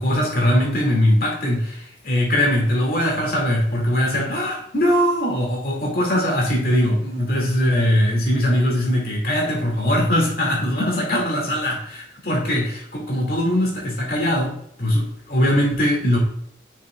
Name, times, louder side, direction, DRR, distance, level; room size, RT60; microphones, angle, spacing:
voice 1, 0.0-16.2, equal, 55° left, 0 dB, 2.1 m, -21 dB
6.5 x 6.4 x 2.3 m, 0.68 s
head